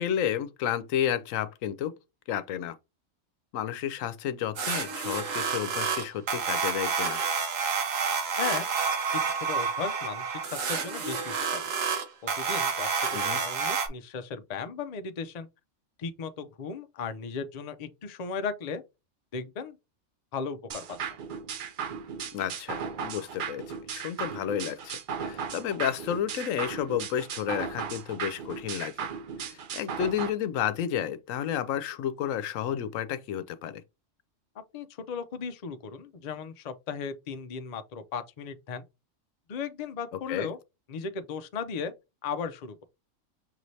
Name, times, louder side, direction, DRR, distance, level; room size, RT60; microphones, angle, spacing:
voice 1, 0.0-1.9 2.3-2.8 3.5-7.2 13.1-13.4 22.3-28.9 29.4-33.8 40.3-40.5, left 9 dB, 85° left, 1.0 m, -31 dB
sound 1, 4.6-13.9, right 5 dB, 85° right, 1.3 m, -29 dB
voice 2, 9.1-11.7 12.2-12.9 13.3-15.5 16.0-18.8 19.3-19.8 20.3-20.8 34.7-38.8 39.5-40.6 40.9-41.9 42.2-42.8, left 5 dB, 50° left, 0.5 m, -36 dB
sound 2, 20.7-30.3, right 7 dB, 55° right, 0.6 m, -36 dB
5.9 x 3.1 x 2.7 m
omnidirectional pair, 1.3 m